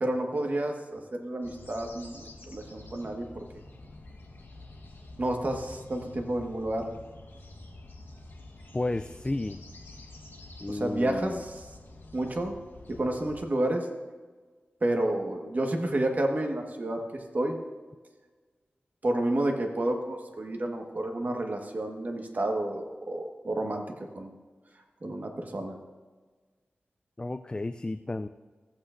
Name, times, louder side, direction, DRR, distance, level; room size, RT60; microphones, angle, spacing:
voice 1, 0.0-3.3 5.2-6.9 10.7-11.6 12.1-12.5 12.9-13.9 14.8-17.0 17.3-17.6 19.0-23.8 24.1-24.3 25.0-25.8, right 1 dB, 45° right, 3 dB, 1.4 m, -30 dB
sound 1, 1.4-13.4, left 2 dB, 75° left, 1.4 m, -48 dB
voice 2, 8.7-9.6 10.6-11.4 27.2-28.3, left 2 dB, 20° left, 10 dB, 0.3 m, -32 dB
14.5 x 8.7 x 2.6 m, 1.4 s
wide cardioid pair, 75°, 4 cm